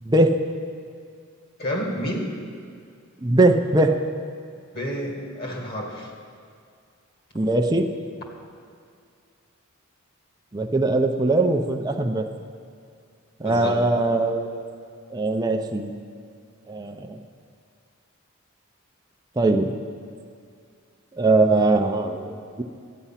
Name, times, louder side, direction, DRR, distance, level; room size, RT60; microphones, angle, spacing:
voice 1, 1.6-2.4 4.7-6.1 13.4-13.8, equal, 45° left, 0 dB, 1.9 m, -29 dB
voice 2, 3.2-3.9 7.3-7.8 10.5-12.2 13.4-14.5 15.1-15.9 16.7-17.2 19.4-19.7 21.2-22.6, right 2 dB, 20° right, 3 dB, 0.6 m, -21 dB
13.0 x 9.3 x 5.7 m, 2.3 s
head